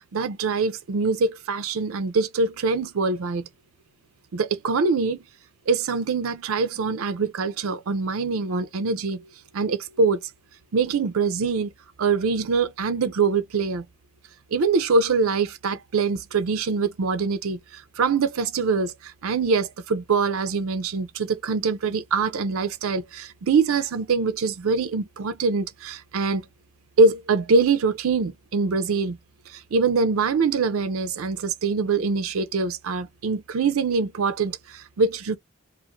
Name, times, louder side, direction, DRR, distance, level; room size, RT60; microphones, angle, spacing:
voice 1, 0.1-3.5 4.3-5.2 5.7-10.2 10.7-11.7 12.0-13.9 14.5-26.4 27.0-29.2 29.5-35.4, right 4 dB, 85° right, 0.5 m, -24 dB
2.5 x 2.4 x 2.9 m
head